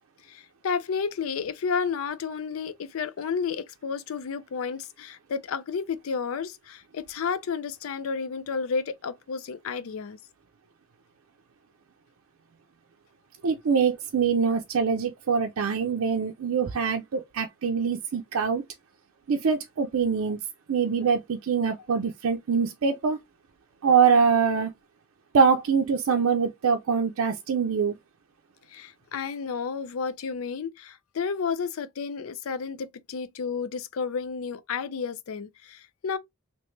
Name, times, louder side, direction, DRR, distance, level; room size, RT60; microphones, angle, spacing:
voice 1, 0.3-10.2 28.7-36.2, left 5 dB, 75° left, 0.4 m, -31 dB
voice 2, 13.4-18.6 19.3-20.4 20.7-23.2 23.8-24.7 25.3-28.0, right 6 dB, 80° right, 0.5 m, -24 dB
3.1 x 2.9 x 3.1 m
head